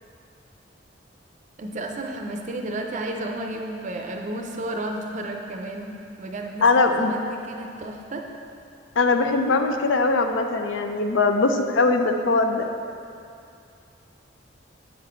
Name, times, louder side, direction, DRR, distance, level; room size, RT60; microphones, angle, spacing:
voice 1, 1.6-8.4, right 1 dB, 40° right, 3 dB, 0.5 m, -32 dB
voice 2, 6.6-7.1 9.0-12.7, left 3 dB, 75° left, 6 dB, 0.5 m, -21 dB
7.8 x 4.1 x 4.4 m, 2.5 s
head